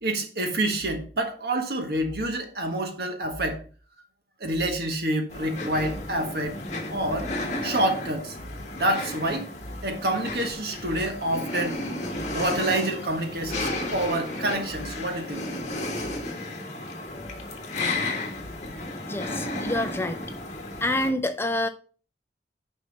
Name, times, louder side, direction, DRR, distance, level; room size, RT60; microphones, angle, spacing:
voice 1, 0.0-3.6 4.4-6.5 6.9-7.3 7.6-8.3 8.7-9.5 9.8-11.8 12.3-15.4, right 1 dB, 60° right, 1.5 m, -27 dB
sound 1, 5.3-21.1, left 2 dB, 40° left, 1.6 m, -33 dB
voice 2, 19.1-20.2 20.8-21.7, left 1 dB, 15° left, 0.4 m, -27 dB
6.4 x 5.4 x 5.1 m
head